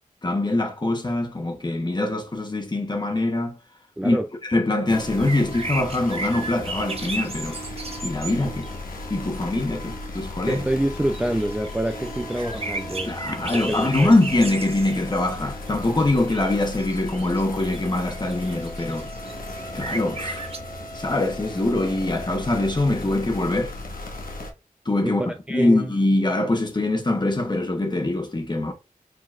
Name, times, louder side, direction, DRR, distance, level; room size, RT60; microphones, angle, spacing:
voice 1, 0.2-3.6 4.0-4.2 4.4-7.6 8.0-8.7 9.1-10.6 13.0-19.1 19.7-20.5 20.9-23.7 24.8-25.2 25.5-28.7, left 2 dB, 30° left, 1.1 m, -23 dB
sound 1, 4.9-24.5, left 2 dB, 80° left, 1.1 m, -36 dB
sound 2, 5.0-8.8 10.2-10.3 10.5-10.7 11.0-15.3 15.8-20.6, right 3 dB, 45° right, 0.7 m, -35 dB
voice 2, 10.5-13.2 13.5-14.2 25.0-25.1 25.5-25.9, right 1 dB, 10° right, 0.4 m, -26 dB
4.7 x 3.9 x 2.4 m
wide cardioid pair, 95°, 14 cm